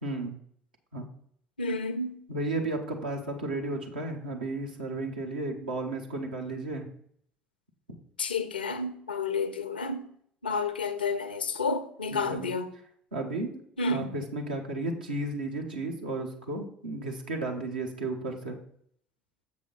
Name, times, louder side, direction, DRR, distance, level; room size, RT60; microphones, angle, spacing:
voice 1, 0.0-0.4 0.9-1.1 2.3-6.9 12.1-12.5 13.1-13.6 13.9-18.6, right 2 dB, 75° right, 1.0 m, -33 dB
voice 2, 1.6-2.2 8.2-10.1 10.4-12.7 13.8-14.1, left 3 dB, 80° left, 0.6 m, -30 dB
7.2 x 5.6 x 3.9 m
figure-of-eight pair, 60°, 5 cm